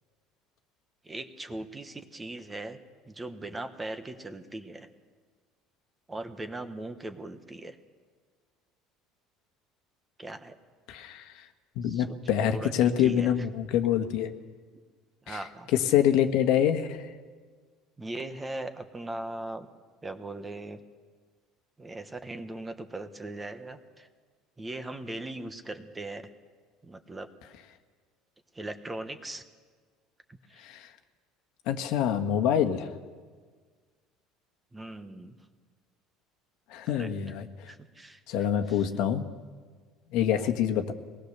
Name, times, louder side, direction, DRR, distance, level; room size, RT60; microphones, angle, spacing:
voice 1, 1.0-2.8 3.1-4.9 6.1-7.8 10.2-10.5 11.9-12.1 12.5-13.3 15.3-15.7 18.0-19.7 20.0-20.8 21.8-24.1 24.6-26.2 26.8-27.3 28.5-29.4 30.5-30.6 34.7-35.4 36.9-37.1 37.7-38.2, right 2 dB, 10° right, 8 dB, 1.1 m, -39 dB
voice 2, 10.9-11.5 11.7-14.4 15.3-17.1 30.6-30.9 31.7-32.9 36.7-37.7 38.3-39.3 40.1-40.9, left 9 dB, 65° left, 7 dB, 1.5 m, -26 dB
23.5 x 19.0 x 6.8 m, 1.5 s
cardioid pair, 155°, 0 cm